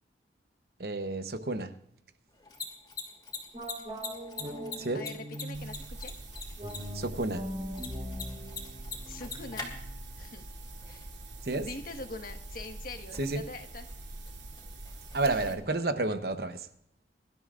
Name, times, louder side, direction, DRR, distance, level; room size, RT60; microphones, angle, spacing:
voice 1, 0.8-1.7 4.8-5.0 6.9-7.4 11.4-11.7 13.1-13.4 15.1-16.7, right 2 dB, 55° right, 10 dB, 0.9 m, -31 dB
Mechanisms, 2.3-15.9, left 4 dB, 25° left, 2.8 m, -46 dB
sound 1, 3.5-5.8 6.6-9.9, equal, 35° right, 3.8 m, -41 dB
voice 2, 4.9-6.1 9.1-9.8 10.2-10.5 10.9-11.1 11.6-13.9 15.5-15.6, left 2 dB, 50° left, 5 dB, 1.4 m, -43 dB
sound 2, 5.5-15.5, right 2 dB, 75° right, 2.7 m, -45 dB
24.0 x 13.0 x 2.5 m, 0.72 s
head